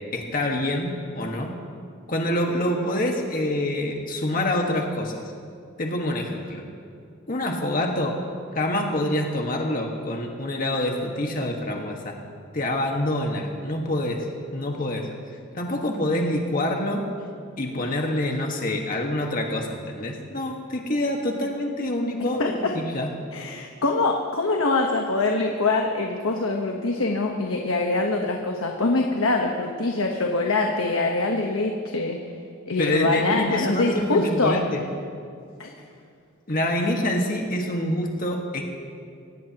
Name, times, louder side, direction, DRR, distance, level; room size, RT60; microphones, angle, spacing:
voice 1, 0.1-1.5 2.1-5.2 5.8-6.6 7.3-8.2 8.5-12.1 12.5-14.3 14.5-15.1 15.5-17.0 17.6-23.1 32.8-34.8 36.5-38.6, left 1 dB, 45° left, 1 dB, 1.7 m, -26 dB
voice 2, 22.2-22.7 23.3-32.2 32.7-34.6 35.6-35.7, left 3 dB, 90° left, 1 dB, 1.2 m, -24 dB
24.5 x 18.0 x 3.0 m, 2.4 s
head